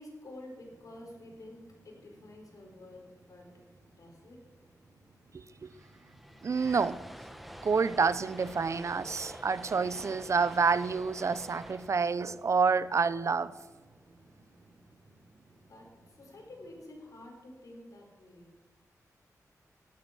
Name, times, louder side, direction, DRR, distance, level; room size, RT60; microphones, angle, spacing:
voice 1, 0.0-3.6 3.8-4.4 15.7-18.6, left 1 dB, 65° left, 0 dB, 5.2 m, -50 dB
sound 1, 0.6-16.8, right 2 dB, 75° right, 5.5 m, -61 dB
sound 2, 5.2-5.3 5.4-13.7, equal, ahead, 1.0 m, -48 dB
voice 2, 5.3-5.7 6.4-7.0 7.6-13.5, right 5 dB, 50° right, 16 dB, 0.7 m, -28 dB
16.5 x 12.0 x 6.2 m, 1.3 s
wide cardioid pair, 100°, 6 cm